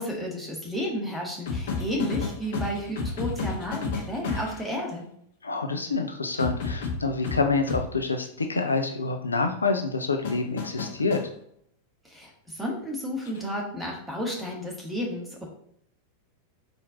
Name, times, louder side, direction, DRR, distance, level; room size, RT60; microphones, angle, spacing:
voice 1, 0.0-5.1 12.0-15.5, equal, ahead, -2 dB, 1.2 m, -32 dB
sound 1, 1.5-4.7 6.4-7.9 10.2-11.3 13.3-13.5, left 4 dB, 55° left, 0.8 m, -31 dB
voice 2, 5.4-11.2, left 3 dB, 75° left, 6 dB, 0.4 m, -27 dB
4.3 x 2.6 x 3.7 m, 0.67 s
figure-of-eight pair, 90°, 0 cm